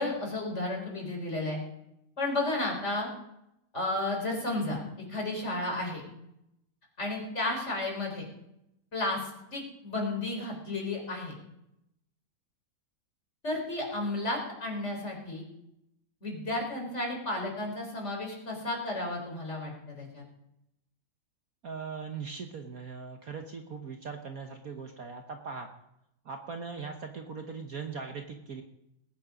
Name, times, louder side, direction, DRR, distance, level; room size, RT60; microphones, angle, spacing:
voice 1, 0.0-1.6 2.2-3.1 3.7-6.0 7.0-8.2 8.9-11.3 13.4-15.4 16.2-20.2, left 2 dB, 35° left, 0 dB, 4.4 m, -33 dB
voice 2, 21.6-25.7 26.2-28.6, right 5 dB, 55° right, 4 dB, 1.4 m, -40 dB
19.5 x 9.3 x 5.1 m, 0.82 s
omnidirectional pair, 2.1 m